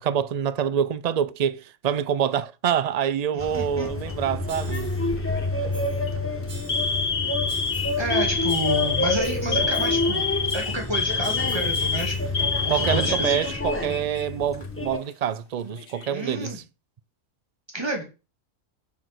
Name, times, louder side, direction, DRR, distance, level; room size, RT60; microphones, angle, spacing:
voice 1, 0.0-4.9 9.4-9.6 12.7-16.6, right 9 dB, 90° right, 0.3 m, -26 dB
voice 2, 3.3-3.9 8.0-10.2 10.5-12.3 12.6-13.6 16.1-16.6 17.7-18.0, right 1 dB, 20° right, 2.5 m, -30 dB
sound 1, 3.4-15.0, left 2 dB, 10° left, 1.0 m, -28 dB
Alarm, 3.8-4.3 5.2-5.5 5.9-6.1 6.7-14.2 14.5-14.7 15.6-16.3, left 5 dB, 45° left, 1.5 m, -28 dB
sound 2, 4.5-5.1 5.7-6.1 6.5-7.1 7.5-8.1 8.5-10.1 10.5-12.4, right 2 dB, 45° right, 2.1 m, -46 dB
7.3 x 6.2 x 6.1 m
omnidirectional pair, 1.4 m